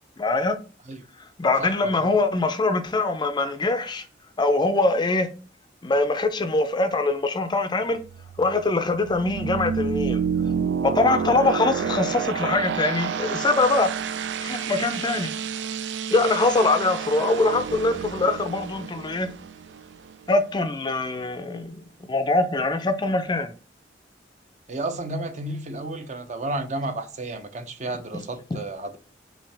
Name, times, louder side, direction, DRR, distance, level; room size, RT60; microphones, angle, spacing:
voice 1, 0.2-0.6 1.4-4.1 4.4-5.3 5.8-8.0 8.4-10.2 10.8-13.9 14.4-15.3 16.1-19.3 20.3-23.5 28.1-28.2, left 2 dB, 25° left, 0.4 m, -23 dB
voice 2, 1.6-2.1 24.7-29.0, right 2 dB, 40° right, 0.7 m, -32 dB
sound 1, 7.9-20.6, right 6 dB, 80° right, 0.4 m, -29 dB
5.7 x 2.8 x 3.3 m
head